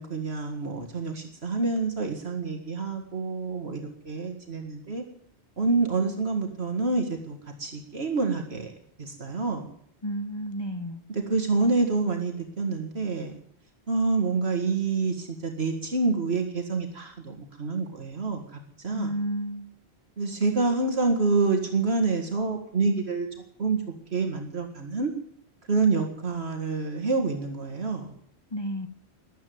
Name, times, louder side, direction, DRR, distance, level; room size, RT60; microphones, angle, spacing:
voice 1, 0.0-5.0 5.6-8.7 9.0-9.7 11.1-13.3 13.9-19.1 20.2-23.3 23.6-23.8 24.1-25.1 25.7-28.1, right 3 dB, 70° right, 4 dB, 2.1 m, -27 dB
voice 2, 10.0-11.0 18.9-19.6 28.5-28.9, right 1 dB, 25° left, 9 dB, 1.0 m, -31 dB
13.5 x 11.5 x 9.5 m, 0.68 s
omnidirectional pair, 1.1 m